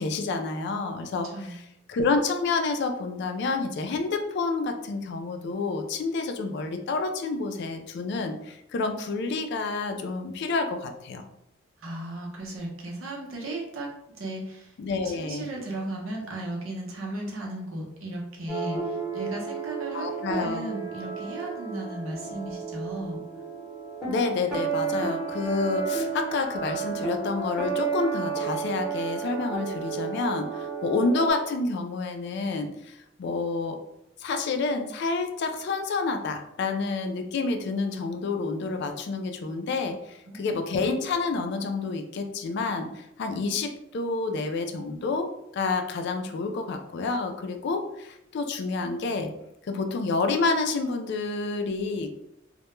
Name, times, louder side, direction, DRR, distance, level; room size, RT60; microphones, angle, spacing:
voice 1, 0.0-1.3 1.9-11.2 14.8-15.5 19.9-20.7 24.1-33.8 34.2-45.3 45.5-49.3 49.7-52.1, left 3 dB, 55° left, 6 dB, 0.3 m, -29 dB
voice 2, 11.8-14.7 15.0-20.1 20.4-23.2 40.3-40.6, right 1 dB, 80° right, -1 dB, 0.7 m, -36 dB
sound 1, 18.5-31.3, right 5 dB, ahead, 0.7 m, -32 dB
2.1 x 2.1 x 3.0 m, 0.83 s
head